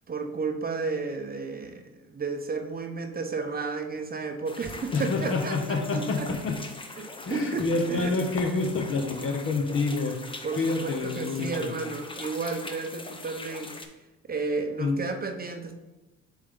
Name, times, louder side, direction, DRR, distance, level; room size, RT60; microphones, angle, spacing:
voice 1, 0.1-1.8 2.1-6.3 7.0-8.1 10.4-13.7 14.2-15.8, right 4 dB, 30° right, 5 dB, 0.8 m, -32 dB
sound 1, 4.5-13.9, left 2 dB, 15° left, 0.8 m, -42 dB
voice 2, 4.9-6.6 7.3-10.2 10.6-11.7 14.8-15.0, left 3 dB, 45° left, 4 dB, 1.1 m, -27 dB
7.5 x 3.7 x 3.8 m, 1.1 s
supercardioid pair, 75°, 30 cm